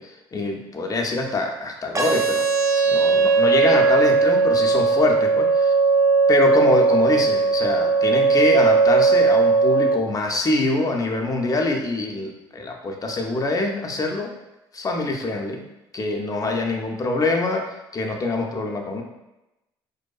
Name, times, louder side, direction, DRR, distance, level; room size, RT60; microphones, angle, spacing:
voice 1, 0.0-2.5 2.9-5.7 6.3-14.3 14.7-15.6 15.9-19.0, left 2 dB, 30° left, 2 dB, 0.4 m, -24 dB
sound 1, 1.9-9.9, right 4 dB, 25° right, 0.5 m, -18 dB
2.6 x 2.2 x 2.3 m, 0.94 s
hypercardioid pair, 50°, 12 cm